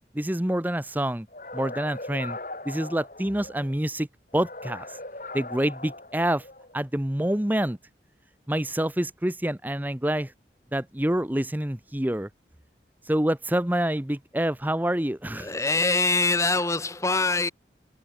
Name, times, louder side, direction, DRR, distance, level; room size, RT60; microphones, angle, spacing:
voice 1, 0.1-1.3 1.5-2.4 2.7-4.1 4.3-4.9 5.3-6.4 6.7-7.8 8.5-10.3 10.7-12.3 13.1-15.5, right 1 dB, 10° right, 0.8 m, -27 dB
sound 1, 1.3-3.7 4.3-6.7, left 2 dB, 45° left, 6.2 m, -39 dB
voice 2, 15.4-17.5, left 3 dB, 15° left, 1.1 m, -24 dB
head